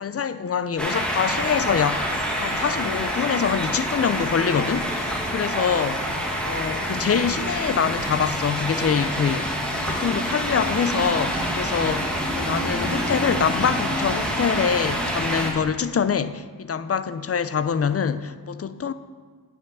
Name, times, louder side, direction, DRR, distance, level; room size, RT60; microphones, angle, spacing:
voice 1, 0.0-2.1 2.4-9.6 9.8-18.9, left 7 dB, 40° left, 0.4 m, -25 dB
sound 1, 0.8-15.5, equal, ahead, 1.6 m, -27 dB
9.0 x 6.3 x 6.1 m
wide cardioid pair, 85°, 38 cm